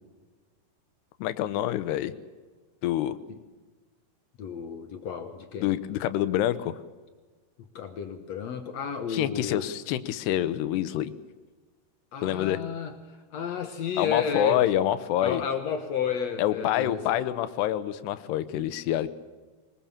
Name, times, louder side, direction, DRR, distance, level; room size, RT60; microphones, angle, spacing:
voice 1, 1.2-2.1 2.8-3.2 5.6-6.8 9.1-11.1 12.2-12.6 14.0-15.4 16.4-19.1, left 12 dB, 85° left, 14 dB, 2.9 m, -26 dB
voice 2, 4.4-5.7 7.7-9.7 12.1-12.9 13.3-14.6 15.2-17.0, left 6 dB, 70° left, 7 dB, 1.6 m, -32 dB
23.0 x 20.0 x 7.2 m, 1.4 s
omnidirectional pair, 4.8 m